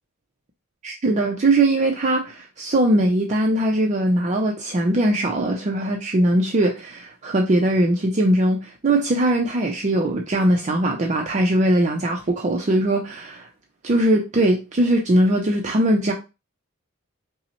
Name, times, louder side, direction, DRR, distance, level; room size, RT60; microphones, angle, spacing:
voice 1, 0.8-13.5 13.8-16.1, right 1 dB, 35° right, 0.5 m, -20 dB
5.3 x 2.1 x 2.9 m
head